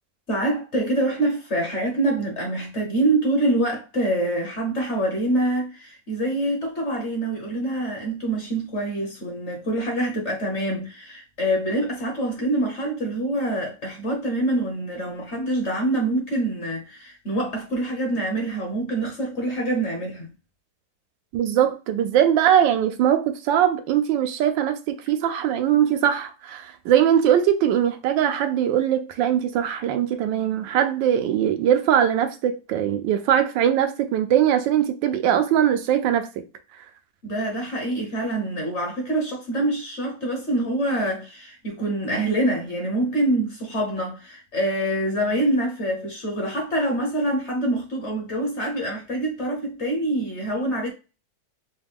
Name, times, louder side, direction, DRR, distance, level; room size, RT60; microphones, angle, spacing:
voice 1, 0.3-20.3 37.2-50.9, right 1 dB, 45° left, 1.2 m, -25 dB
voice 2, 21.3-36.3, right 10 dB, 80° right, 1.3 m, -21 dB
4.7 x 2.2 x 3.5 m
omnidirectional pair, 2.0 m